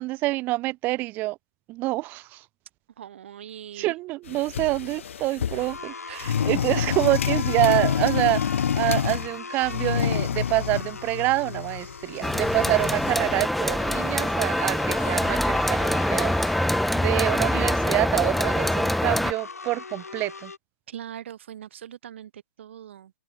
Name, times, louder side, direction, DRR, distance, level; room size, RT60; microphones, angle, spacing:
voice 1, 0.0-1.4 1.7-2.2 3.8-8.4 8.7-16.3 16.6-20.5, right 20 dB, 25° right, 1.3 m, -26 dB
voice 2, 3.0-4.0 6.1-6.5 20.9-23.1, right 10 dB, 50° right, 6.8 m, -42 dB
sound 1, 4.3-5.8 6.2-9.3 9.6-13.5, left 8 dB, 60° left, 2.4 m, -28 dB
sound 2, 5.6-20.6, left 4 dB, 80° left, 3.4 m, -39 dB
sound 3, 12.2-19.3, left 1 dB, ahead, 0.8 m, -24 dB
open air
hypercardioid pair, 140°, 8 cm